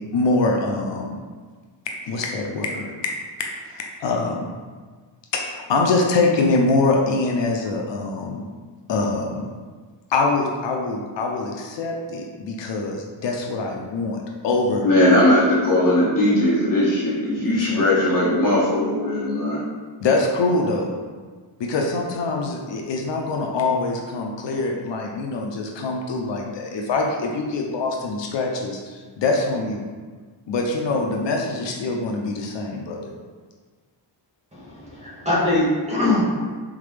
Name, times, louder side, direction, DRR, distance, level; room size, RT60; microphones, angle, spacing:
voice 1, 0.1-1.2 2.0-2.9 3.7-4.5 5.3-8.5 8.9-9.5 10.1-14.2 14.4-14.9 17.4-17.8 20.0-20.9 21.6-29.8 30.5-33.1, left 3 dB, 80° left, 1 dB, 0.6 m, -24 dB
voice 2, 14.8-19.6, left 1 dB, 45° left, -7 dB, 1.5 m, -19 dB
voice 3, 34.5-36.2, left 2 dB, 15° right, -8 dB, 1.4 m, -22 dB
3.8 x 3.6 x 3.3 m, 1.5 s
wide cardioid pair, 135°, 43 cm